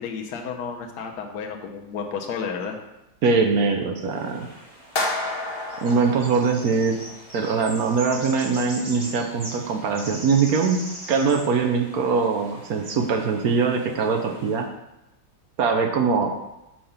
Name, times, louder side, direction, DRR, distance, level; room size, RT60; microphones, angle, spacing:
voice 1, 0.0-2.8, left 6 dB, 65° left, 2 dB, 1.3 m, -32 dB
voice 2, 3.2-4.5 5.8-7.0 7.3-10.8 11.1-14.7 15.6-16.4, right 5 dB, 65° right, 3 dB, 1.0 m, -22 dB
sound 1, 4.1-14.6, equal, 20° right, 1.9 m, -41 dB
sound 2, 5.0-7.2, left 2 dB, 40° left, 1.1 m, -30 dB
5.7 x 5.1 x 5.6 m, 0.93 s
omnidirectional pair, 2.0 m